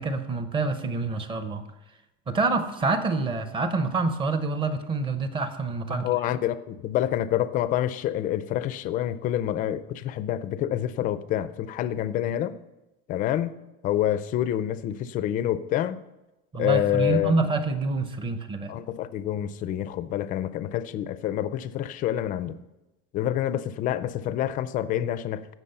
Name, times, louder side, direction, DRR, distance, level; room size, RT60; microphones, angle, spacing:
voice 1, 0.0-1.6 2.3-6.1 16.5-18.7, right 3 dB, 15° right, 9 dB, 0.7 m, -27 dB
voice 2, 5.9-12.6 13.1-13.5 13.8-16.0 16.5-17.5 18.7-22.6 23.1-25.5, left 12 dB, 25° left, 14 dB, 0.4 m, -27 dB
16.0 x 6.2 x 5.5 m, 0.99 s
cardioid pair, 180°, 31 cm